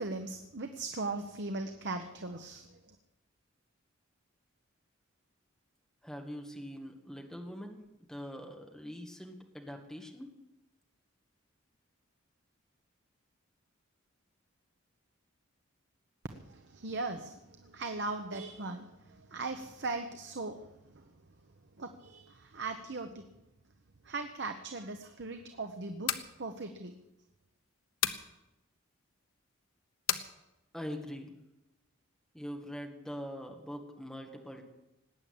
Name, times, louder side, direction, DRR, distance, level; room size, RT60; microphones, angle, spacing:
voice 1, 0.0-2.7 16.3-20.6 21.8-23.2 24.0-26.1 26.4-27.0, right 3 dB, 55° right, 6 dB, 1.0 m, -39 dB
voice 2, 6.0-7.8 8.1-10.3 30.7-31.3 32.3-34.6, equal, ahead, 2 dB, 1.8 m, -43 dB
sound 1, 25.9-26.3 28.0-28.3 30.1-30.3, left 10 dB, 80° left, 1.1 m, -31 dB
19.0 x 8.8 x 8.7 m, 0.94 s
head